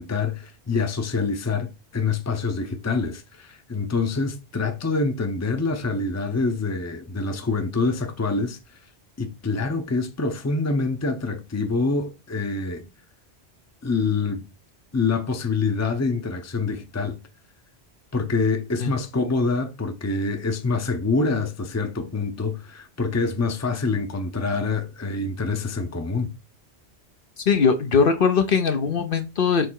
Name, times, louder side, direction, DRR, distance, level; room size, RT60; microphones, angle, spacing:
voice 1, 0.0-8.6 9.2-12.9 13.8-14.5 14.9-17.2 18.1-26.3, left 4 dB, 15° left, 0.7 m, -26 dB
voice 2, 27.5-29.7, left 5 dB, 60° left, 0.9 m, -20 dB
6.4 x 3.3 x 4.7 m
omnidirectional pair, 1.1 m